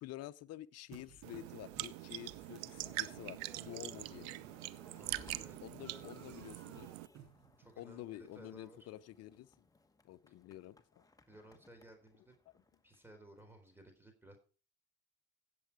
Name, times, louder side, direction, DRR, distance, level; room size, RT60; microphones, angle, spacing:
voice 1, 0.0-4.4 5.6-6.9 7.8-9.5 10.0-11.1, left 14 dB, 50° left, 0.7 m, -49 dB
sound 1, 0.9-7.7, right 7 dB, 55° right, 5.5 m, -61 dB
sound 2, 1.2-7.1, right 18 dB, 85° right, 0.8 m, -44 dB
sound 3, 2.5-13.8, left 3 dB, 10° left, 1.3 m, -63 dB
voice 2, 4.9-5.6 5.9-6.1 7.6-8.9 10.3-10.4 11.3-12.3 12.8-14.4, right 1 dB, 5° right, 4.1 m, -58 dB
16.5 x 7.6 x 4.8 m
supercardioid pair, 100°, 32 cm